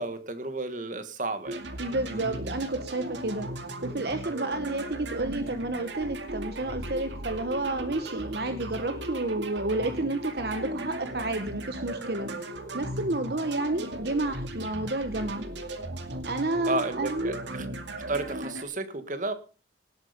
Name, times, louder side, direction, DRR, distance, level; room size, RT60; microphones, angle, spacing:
voice 1, 0.0-1.6 2.1-2.4 16.7-17.7 17.9-19.3, right 2 dB, 45° right, 10 dB, 1.8 m, -32 dB
sound 1, 1.4-18.6, right 1 dB, 85° right, 2.4 m, -37 dB
voice 2, 1.8-3.5 3.8-15.5 16.2-17.4, right 2 dB, 60° right, 8 dB, 1.2 m, -30 dB
18.5 x 8.7 x 5.2 m, 0.36 s
head